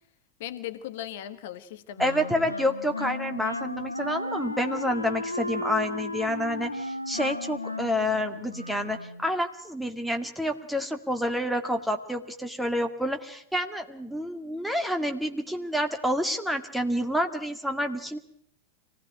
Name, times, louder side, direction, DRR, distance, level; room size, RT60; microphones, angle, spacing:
voice 1, 0.4-2.5, left 12 dB, 50° left, 11 dB, 1.4 m, -38 dB
Wind instrument woodwind instrument, 2.0-9.3, left 1 dB, 85° left, 1.0 m, -34 dB
voice 2, 2.0-18.2, equal, ahead, 5 dB, 2.0 m, -28 dB
25.0 x 17.0 x 8.8 m, 0.69 s
figure-of-eight pair, 90°, 0 cm